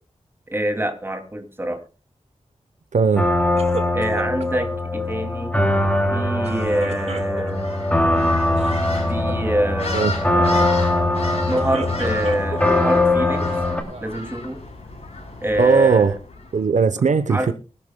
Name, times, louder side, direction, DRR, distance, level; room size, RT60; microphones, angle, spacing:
voice 1, 0.5-1.8 3.9-5.5 6.1-7.7 9.1-13.5 14.0-14.6 15.4-16.2 17.3-17.5, right 1 dB, 20° right, 2.5 m, -25 dB
voice 2, 2.9-3.3 9.9-10.1 15.6-16.1 16.5-17.5, right 5 dB, 70° right, 0.8 m, -18 dB
sound 1, 3.2-13.8, left 1 dB, 10° left, 2.6 m, -21 dB
sound 2, 3.6-4.7 6.4-7.7 8.4-8.8 9.1-9.5 11.3-12.8 13.4-14.2, right 3 dB, 55° right, 1.8 m, -35 dB
sound 3, 7.5-16.6, left 2 dB, 55° left, 6.0 m, -35 dB
24.0 x 11.5 x 2.2 m
wide cardioid pair, 90°, 13 cm